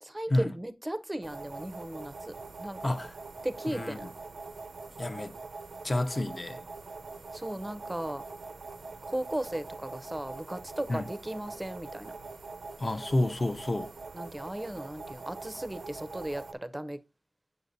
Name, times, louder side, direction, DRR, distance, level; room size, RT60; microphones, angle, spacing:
voice 1, 0.0-3.0 3.4-4.1 7.3-8.2 9.1-12.2 14.1-17.0, right 1 dB, 15° right, 0.6 m, -36 dB
sound 1, 1.2-16.5, right 3 dB, 75° right, 0.5 m, -44 dB
voice 2, 2.8-3.1 3.7-4.1 5.0-5.3 5.8-6.6 10.9-11.0 12.8-13.9, left 1 dB, 35° left, 0.6 m, -29 dB
8.0 x 5.9 x 2.6 m
wide cardioid pair, 80°, 0 cm